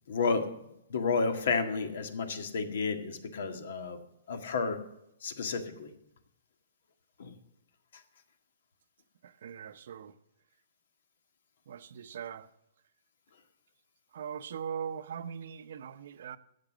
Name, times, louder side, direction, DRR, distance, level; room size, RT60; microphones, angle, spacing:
voice 1, 0.1-0.5 0.9-4.0 4.3-4.8 5.2-5.9 7.2-7.3, left 4 dB, 70° left, 1.8 m, -31 dB
voice 2, 9.2-10.1 11.7-12.5 14.1-16.4, right 8 dB, 65° right, 0.7 m, -40 dB
12.0 x 7.8 x 6.2 m
hypercardioid pair, 155°, 0 cm